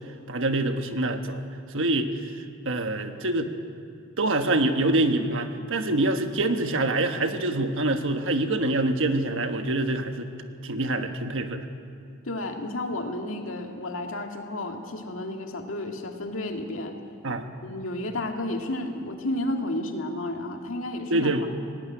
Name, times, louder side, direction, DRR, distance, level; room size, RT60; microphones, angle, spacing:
voice 1, 0.3-1.4 1.7-2.1 2.6-3.5 4.2-10.3 10.6-11.7 17.2-17.4 21.1-21.4, right 2 dB, 65° right, 7 dB, 1.4 m, -25 dB
voice 2, 12.2-16.9 17.6-21.5, left 1 dB, 70° left, 3 dB, 2.1 m, -32 dB
18.0 x 17.0 x 9.8 m, 2.4 s
head